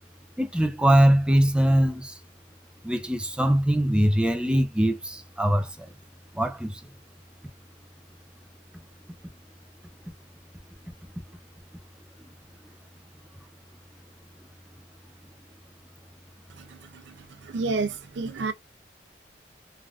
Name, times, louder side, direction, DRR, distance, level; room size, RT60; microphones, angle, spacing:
voice 1, 0.4-2.1 2.8-5.9 6.4-6.8, right 1 dB, 5° right, 0.4 m, -22 dB
voice 2, 16.6-17.1 17.4-18.5, right 3 dB, 85° right, 0.4 m, -30 dB
3.3 x 2.4 x 2.3 m
head